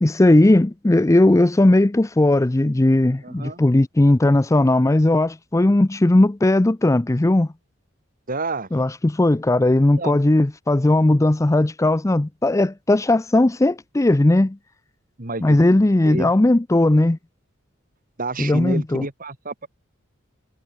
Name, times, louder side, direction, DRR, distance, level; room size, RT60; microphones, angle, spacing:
voice 1, 0.0-7.5 8.7-14.6 15.4-17.2 18.4-19.1, left 1 dB, 15° left, 0.5 m, -17 dB
voice 2, 3.2-3.6 8.3-8.7 10.0-10.2 15.2-15.6 16.0-16.3 18.2-19.7, right 3 dB, 45° right, 2.6 m, -29 dB
head